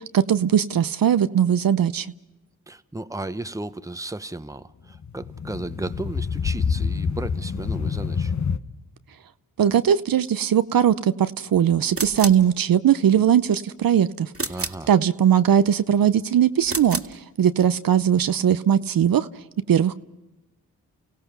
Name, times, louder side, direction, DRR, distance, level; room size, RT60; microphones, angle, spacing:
voice 1, 0.0-2.1 9.6-14.3 14.9-19.3 19.7-19.9, right 9 dB, 65° right, 13 dB, 0.7 m, -20 dB
voice 2, 2.7-8.3 14.5-14.9, right 2 dB, 10° right, 12 dB, 1.0 m, -34 dB
sound 1, 4.9-8.6, left 6 dB, 50° left, 1.1 m, -27 dB
sound 2, 11.9-12.5 14.3-14.9 16.6-17.2, right 3 dB, 35° right, 2.0 m, -30 dB
30.0 x 16.5 x 6.0 m, 0.98 s
supercardioid pair, 40°, 37 cm